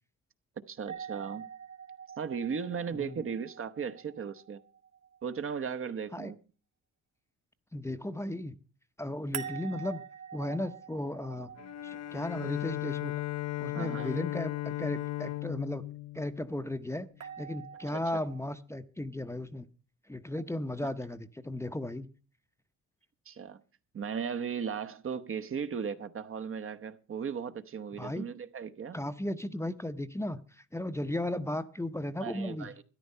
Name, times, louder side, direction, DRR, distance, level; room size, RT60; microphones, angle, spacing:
voice 1, 0.6-1.4 2.2-4.6 5.2-6.4 13.7-14.1 17.9-18.2 23.3-23.6 23.9-29.0 32.2-32.8, right 6 dB, 45° right, 1.0 m, -36 dB
sound 1, 0.9-5.8 9.3-13.4 17.2-18.4, right 8 dB, 60° right, 2.0 m, -46 dB
voice 2, 2.9-3.3 6.1-6.3 7.7-8.6 9.0-10.0 10.3-11.6 11.8-13.1 13.6-15.8 16.1-19.7 20.1-22.1 28.0-28.3 28.9-32.7, left 1 dB, 10° left, 0.7 m, -35 dB
Bowed string instrument, 11.6-17.1, left 16 dB, 60° left, 0.6 m, -36 dB
13.5 x 10.5 x 5.5 m
cardioid pair, 90°, 30 cm